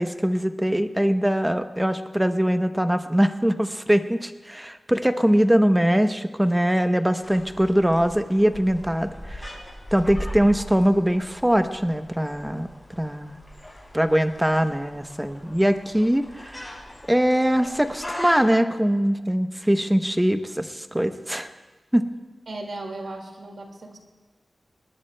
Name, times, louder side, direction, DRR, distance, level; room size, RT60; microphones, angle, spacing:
voice 1, 0.0-9.6 9.9-12.7 13.0-13.4 13.9-16.7 17.1-21.5 21.9-22.1, equal, 10° right, 8 dB, 0.8 m, -22 dB
sound 1, 7.2-18.4, equal, 15° left, 5.3 m, -40 dB
voice 2, 22.5-24.0, right 2 dB, 75° right, 2 dB, 2.0 m, -36 dB
20.0 x 20.0 x 2.2 m, 1.3 s
wide cardioid pair, 75°, 0 cm